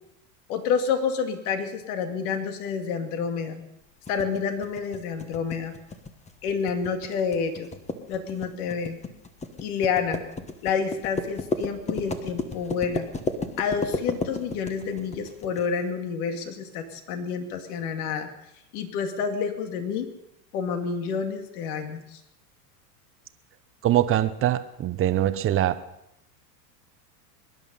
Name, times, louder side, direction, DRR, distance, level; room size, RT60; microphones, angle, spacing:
voice 1, 0.5-3.6 4.1-5.7 6.4-7.7 8.1-9.0 9.6-10.2 10.6-13.1 13.6-18.3 18.7-20.1 20.5-22.2, left 6 dB, 65° left, 6 dB, 2.4 m, -29 dB
sound 1, 4.1-15.6, left 3 dB, 15° left, 1.3 m, -33 dB
voice 2, 23.8-25.8, right 12 dB, 25° right, 12 dB, 0.9 m, -23 dB
23.5 x 11.0 x 5.4 m, 0.84 s
supercardioid pair, 120°, 48 cm